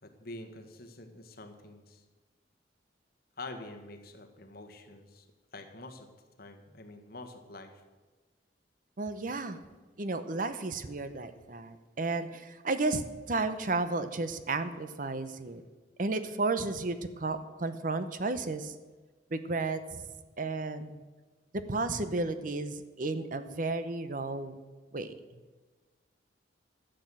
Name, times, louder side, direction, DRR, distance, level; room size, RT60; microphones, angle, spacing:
voice 1, 0.0-2.0 3.4-5.3 5.5-6.1 6.4-7.8, left 2 dB, 55° left, 5 dB, 1.5 m, -46 dB
voice 2, 9.0-9.6 10.0-15.6 16.0-18.7 19.3-20.0 20.4-21.0 21.5-24.6 24.9-25.1, right 3 dB, 45° right, 11 dB, 0.8 m, -33 dB
13.0 x 7.8 x 7.6 m, 1.3 s
head